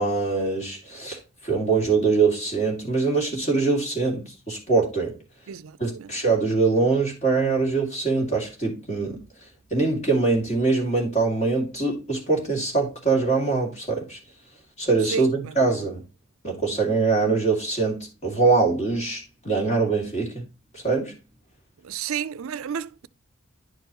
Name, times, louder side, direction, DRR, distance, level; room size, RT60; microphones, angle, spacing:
voice 1, 0.0-5.2 5.8-9.2 9.7-14.2 14.8-16.0 16.4-20.4 20.7-21.1, right 4 dB, 30° left, 2.5 m, -23 dB
voice 2, 5.5-6.1 15.1-15.3 21.8-23.1, right 7 dB, 70° right, 0.4 m, -31 dB
10.5 x 4.6 x 2.9 m
head